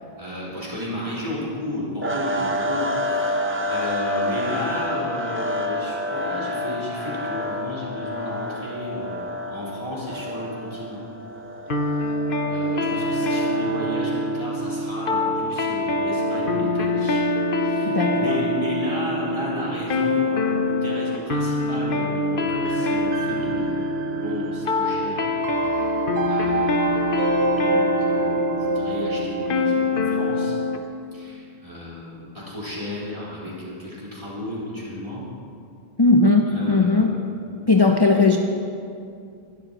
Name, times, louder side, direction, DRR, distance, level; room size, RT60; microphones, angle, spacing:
voice 1, 0.2-11.0 11.8-17.2 17.6-25.3 25.6-26.0 26.3-27.1 27.4-30.6 31.1-35.2 36.5-37.1 37.5-37.6, left 1 dB, 35° right, -8 dB, 4.3 m, -33 dB
sound 1, 2.0-14.4, left 1 dB, 15° right, 0.6 m, -29 dB
sound 2, 11.7-30.8, left 1 dB, 60° left, 1.0 m, -24 dB
voice 2, 17.9-18.4 36.0-37.2 37.7-38.4, left 3 dB, 30° left, 3 dB, 0.6 m, -18 dB
sound 3, 22.5-29.6, right 2 dB, 80° right, 0.9 m, -28 dB
20.0 x 13.0 x 3.0 m, 2.4 s
omnidirectional pair, 1.0 m